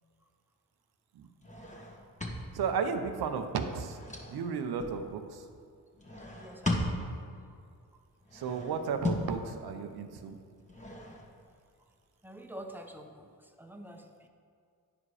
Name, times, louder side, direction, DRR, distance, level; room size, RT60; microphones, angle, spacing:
sound 1, 1.4-2.9 3.6-5.0 5.9-7.4 8.2-9.4 10.6-11.5, left 1 dB, 20° left, 1.4 m, -37 dB
voice 1, 2.5-4.0 4.3-5.4 8.3-10.4, right 6 dB, 75° right, 7 dB, 0.8 m, -34 dB
voice 2, 6.3-7.0 12.2-13.3 13.6-14.0, right 1 dB, 5° right, 4 dB, 0.9 m, -46 dB
9.6 x 5.0 x 4.8 m, 2.3 s
supercardioid pair, 50°, 38 cm